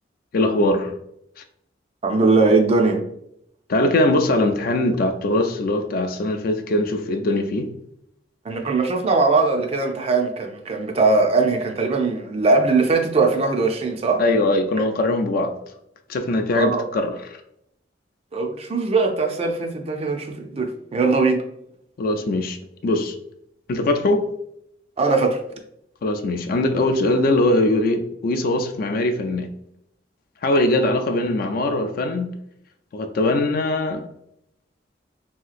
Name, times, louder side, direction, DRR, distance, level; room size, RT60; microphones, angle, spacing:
voice 1, 0.3-0.9 3.7-7.7 14.2-15.5 16.1-17.4 22.0-22.6 22.8-23.2 23.7-24.3 26.0-29.5 30.4-32.3 32.9-34.0, left 2 dB, 50° left, 0.3 m, -21 dB
voice 2, 2.0-3.0 8.5-14.2 16.5-16.8 18.3-21.4 25.0-25.4, right 3 dB, 35° right, 0.4 m, -20 dB
3.1 x 2.8 x 2.4 m
head